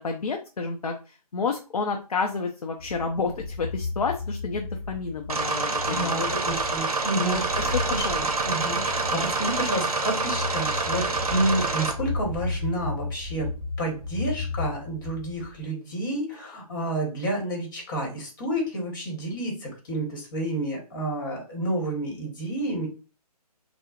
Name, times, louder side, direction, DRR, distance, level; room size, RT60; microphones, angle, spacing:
voice 1, 0.0-6.2 7.2-7.7 8.0-8.2, left 4 dB, 65° left, 2 dB, 0.5 m, -30 dB
sound 1, 2.8-15.6, left 3 dB, 25° right, 1.8 m, -34 dB
sound 2, 5.3-11.9, right 3 dB, 65° right, 0.6 m, -27 dB
voice 2, 5.9-13.5 13.8-22.9, right 1 dB, 30° left, 0 dB, 1.1 m, -30 dB
4.5 x 2.0 x 2.4 m, 0.33 s
figure-of-eight pair, 150°, 20 cm